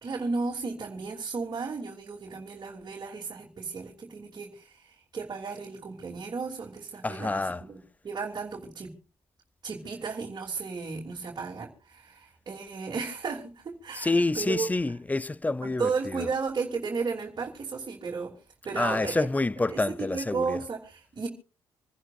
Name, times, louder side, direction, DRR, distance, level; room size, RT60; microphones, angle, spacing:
voice 1, 0.0-7.4 7.7-8.9 9.6-14.7 15.6-18.3 18.6-19.3 19.7-21.3, right 4 dB, 45° right, 3.0 m, -34 dB
voice 2, 7.0-7.7 13.9-16.3 18.8-20.6, left 2 dB, 15° left, 0.6 m, -28 dB
27.5 x 11.0 x 2.6 m
supercardioid pair, 65°, 9 cm